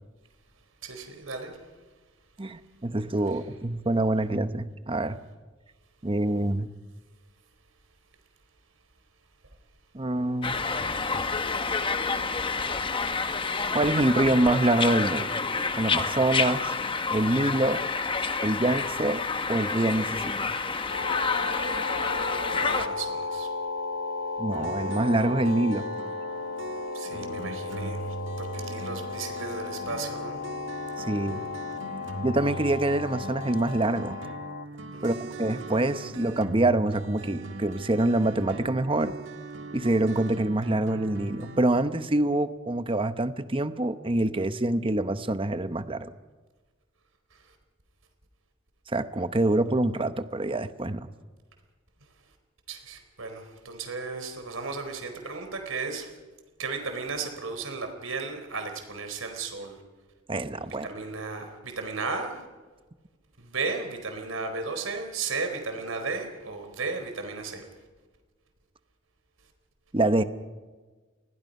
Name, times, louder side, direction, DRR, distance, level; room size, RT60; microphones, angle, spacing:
voice 1, 0.8-1.6 20.8-21.0 22.5-23.5 26.9-30.5 34.9-35.2 47.3-47.5 52.7-56.2 56.6-59.8 60.7-62.4 63.4-67.7, right 4 dB, 90° right, 6 dB, 4.3 m, -35 dB
voice 2, 2.4-5.2 6.0-6.7 9.9-10.6 13.7-15.4 15.8-16.7 17.1-17.8 18.4-19.2 19.5-20.5 24.4-25.9 31.0-31.4 32.2-34.2 35.0-39.2 39.7-46.1 48.9-51.1 60.3-60.9 69.9-70.2, right 2 dB, 25° right, 11 dB, 0.9 m, -25 dB
sound 1, 10.4-22.9, left 4 dB, 25° left, 1.1 m, -29 dB
sound 2, 20.9-34.7, left 4 dB, 65° left, 0.6 m, -35 dB
sound 3, 24.5-41.6, right 3 dB, 65° right, 1.7 m, -40 dB
27.0 x 21.0 x 5.5 m, 1.3 s
head